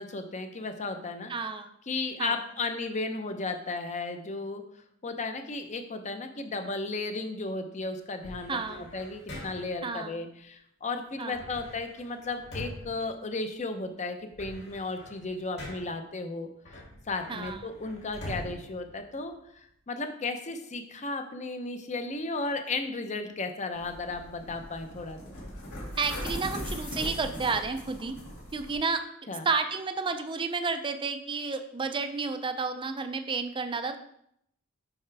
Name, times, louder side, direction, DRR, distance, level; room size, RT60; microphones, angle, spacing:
voice 1, 0.0-1.5 1.9-4.6 5.0-16.8 17.1-25.2 29.3-29.5, left 3 dB, 35° left, 7 dB, 0.7 m, -34 dB
voice 2, 1.3-1.7 2.2-2.4 8.5-8.9 9.8-10.2 11.2-11.4 17.3-17.6 26.0-28.1 28.5-29.0 29.4-34.0, right 4 dB, 25° right, 8 dB, 0.4 m, -31 dB
sound 1, 8.2-9.9 11.3-13.8 14.1-16.1 16.6-19.7, left 1 dB, 50° left, 2.3 m, -44 dB
sound 2, 23.7-28.8, left 1 dB, 85° left, 2.3 m, -39 dB
7.1 x 5.7 x 3.4 m, 0.73 s
head